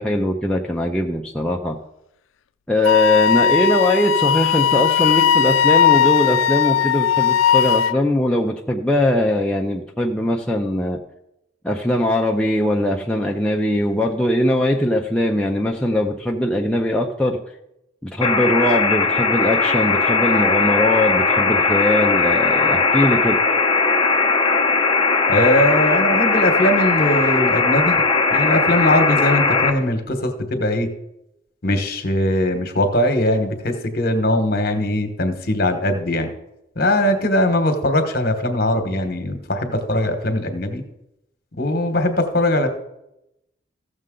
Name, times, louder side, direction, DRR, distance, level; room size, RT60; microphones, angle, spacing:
voice 1, 0.0-1.8 2.7-11.0 11.6-17.4 18.0-23.4, left 1 dB, 5° left, -1 dB, 0.5 m, -20 dB
Wind instrument woodwind instrument, 2.8-8.0, left 8 dB, 85° left, 0.4 m, -17 dB
sound 1, 18.2-29.7, left 4 dB, 25° left, 0.9 m, -18 dB
voice 2, 25.3-28.0 28.3-30.9 31.6-36.3 36.7-40.8 41.6-42.7, left 1 dB, 50° left, 6 dB, 1.2 m, -20 dB
15.5 x 6.6 x 3.8 m, 0.88 s
head